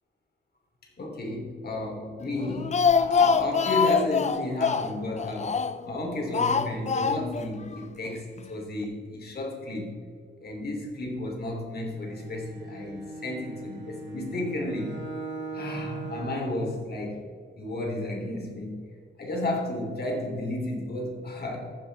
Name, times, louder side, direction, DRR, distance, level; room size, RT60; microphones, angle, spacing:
voice 1, 1.0-9.9 10.4-15.0 15.5-17.2 17.6-18.8 19.2-21.7, left 1 dB, 55° left, 0 dB, 3.0 m, -32 dB
Speech, 2.4-5.9 6.3-7.5 7.7-7.8 8.1-8.2, left 6 dB, 35° left, 0.5 m, -25 dB
Bowed string instrument, 11.8-16.6, right 3 dB, 65° right, 2.3 m, -39 dB
14.5 x 10.0 x 3.4 m, 2.1 s
wide cardioid pair, 155°, 20 cm